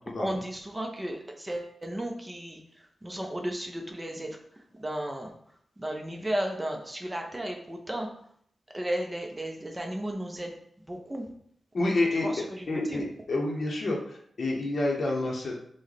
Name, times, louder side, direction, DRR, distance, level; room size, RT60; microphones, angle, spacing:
voice 1, 0.2-5.3 5.8-8.1 8.7-11.3 12.1-13.0, right 1 dB, 10° right, 2 dB, 0.6 m, -34 dB
voice 2, 11.7-12.3 12.7-15.6, left 2 dB, 45° left, -2 dB, 0.8 m, -28 dB
6.0 x 2.2 x 3.2 m, 0.66 s
wide cardioid pair, 165°, 0 cm